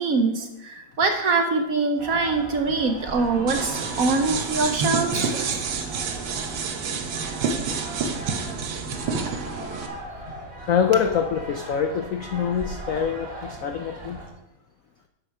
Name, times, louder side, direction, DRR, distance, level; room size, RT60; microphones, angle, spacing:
voice 1, 0.0-5.7, right 3 dB, 55° right, 5 dB, 1.0 m, -24 dB
sound 1, 2.0-14.3, right 1 dB, 25° right, 3.1 m, -38 dB
sound 2, 3.5-9.9, right 5 dB, 75° right, 1.8 m, -28 dB
voice 2, 10.7-14.2, left 7 dB, 75° left, 6 dB, 0.7 m, -25 dB
8.1 x 7.6 x 5.6 m, 0.89 s
omnidirectional pair, 2.1 m